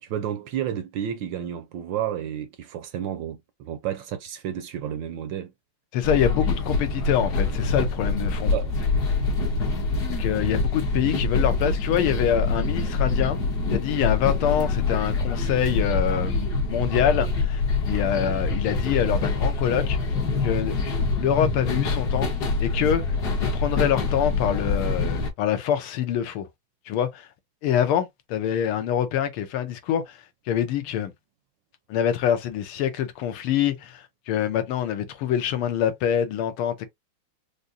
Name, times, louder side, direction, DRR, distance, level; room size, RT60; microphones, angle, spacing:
voice 1, 0.0-5.5 8.5-8.7, right 10 dB, 75° right, 1.1 m, -31 dB
voice 2, 5.9-8.5 10.2-13.4 13.7-20.0 20.4-20.8 21.2-23.0 23.4-26.5 26.9-27.3 27.6-30.2 30.5-31.1 31.9-36.9, left 9 dB, 90° left, 1.6 m, -25 dB
sound 1, 6.0-25.3, left 3 dB, 55° left, 1.5 m, -25 dB
5.0 x 2.1 x 2.7 m
omnidirectional pair, 2.4 m